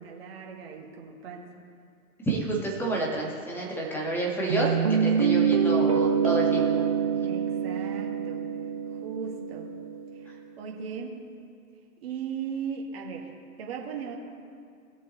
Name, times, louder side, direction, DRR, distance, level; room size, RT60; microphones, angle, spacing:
voice 1, 0.0-1.5 7.2-8.4 8.9-9.7 10.1-11.2 12.0-13.3 13.6-14.2, right 6 dB, 45° right, -1 dB, 2.1 m, -37 dB
voice 2, 2.2-6.7, right 2 dB, 5° left, -2 dB, 1.7 m, -29 dB
sound 1, 4.5-10.2, right 7 dB, 25° right, 0.4 m, -26 dB
20.5 x 7.1 x 3.2 m, 2.4 s
figure-of-eight pair, 125°, 44 cm